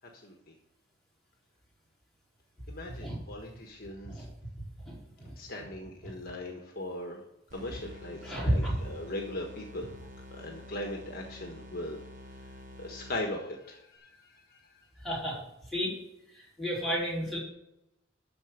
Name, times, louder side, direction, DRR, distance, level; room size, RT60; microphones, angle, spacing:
voice 1, 0.2-0.5 2.7-4.2 5.4-7.2 7.5-9.9 10.3-12.0 12.8-14.3, left 1 dB, 50° left, 1 dB, 1.4 m, -39 dB
voice 2, 4.8-5.3 8.2-8.7 15.0-15.4 15.7-15.9 16.3-17.4, equal, ahead, -8 dB, 4.6 m, -31 dB
sound 1, 7.5-13.5, left 1 dB, 40° right, 1.6 m, -48 dB
13.0 x 4.5 x 6.6 m, 0.84 s
head